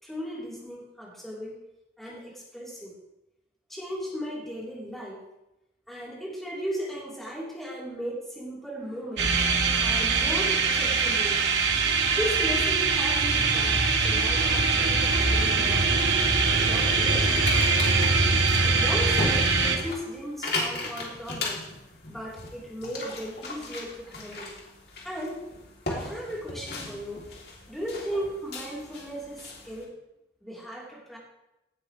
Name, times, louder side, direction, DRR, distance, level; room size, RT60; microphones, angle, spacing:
voice 1, 0.0-1.6 2.0-3.0 3.7-5.2 5.9-9.4 9.8-11.4 12.1-15.8 16.5-17.6 18.6-21.7 22.1-24.5 25.0-25.5 25.9-27.3 27.7-29.9 30.4-31.2, equal, ahead, -5 dB, 3.9 m, -36 dB
sound 1, 9.2-19.8, right 4 dB, 85° right, 1.9 m, -23 dB
sound 2, 15.4-29.8, left 2 dB, 65° left, 3.3 m, -37 dB
17.5 x 12.0 x 3.3 m, 0.90 s
head